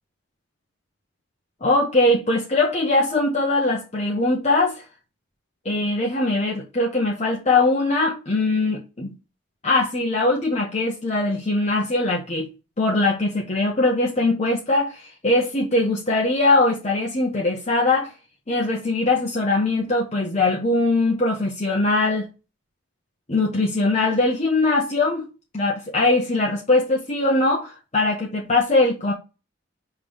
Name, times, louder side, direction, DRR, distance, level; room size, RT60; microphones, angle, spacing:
voice 1, 1.6-4.8 5.6-9.1 9.6-12.5 12.8-18.1 18.5-22.2 23.3-25.3 25.5-29.1, left 2 dB, 35° left, 1.0 m, -21 dB
5.2 x 3.5 x 5.3 m
head